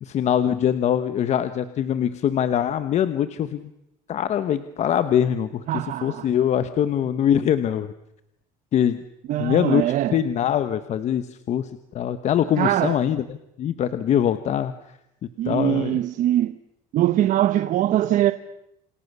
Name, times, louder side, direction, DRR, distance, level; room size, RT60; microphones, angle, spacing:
voice 1, 0.0-3.7 4.1-7.9 8.7-9.0 9.4-14.7 15.4-16.0, left 9 dB, 40° left, 1.2 m, -23 dB
voice 2, 5.7-6.3 9.3-10.2 12.6-13.0 15.4-16.5 16.9-18.3, right 13 dB, 50° right, 1.0 m, -22 dB
29.0 x 28.5 x 6.8 m
cardioid pair, 155°, 17 cm